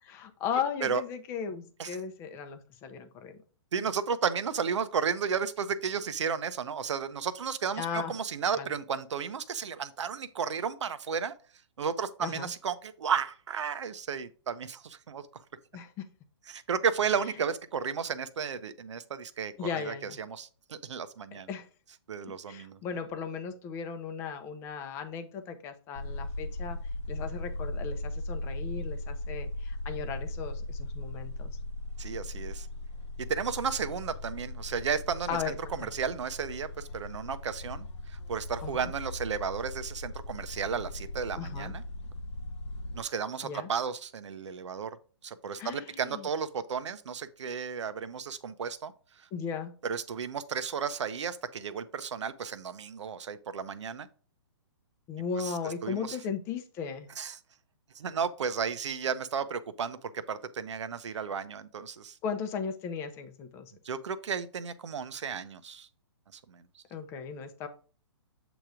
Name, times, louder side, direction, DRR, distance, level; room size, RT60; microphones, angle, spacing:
voice 1, 0.0-3.4 7.8-8.1 8.6-8.7 12.2-12.5 15.7-16.1 19.6-20.2 21.3-21.7 22.5-26.8 27.1-31.6 35.3-35.5 35.8-35.9 38.6-38.9 41.4-41.7 43.4-43.7 45.6-46.3 49.3-49.7 55.1-57.1 61.1-61.2 62.2-63.7 66.9-67.7, left 6 dB, 15° left, 9 dB, 0.6 m, -36 dB
voice 2, 3.7-11.3 11.8-15.4 16.5-21.5 22.1-22.8 32.0-32.7 33.2-41.8 42.9-45.0 45.2-49.3 49.8-54.1 55.4-56.2 57.2-57.4 57.9-62.2 63.8-65.9 66.3-66.8, right 6 dB, 80° right, 12 dB, 0.8 m, -33 dB
sound 1, 26.0-43.0, left 1 dB, 75° left, 0.8 m, -38 dB
7.9 x 3.0 x 4.9 m, 0.39 s
hypercardioid pair, 160°, 15 cm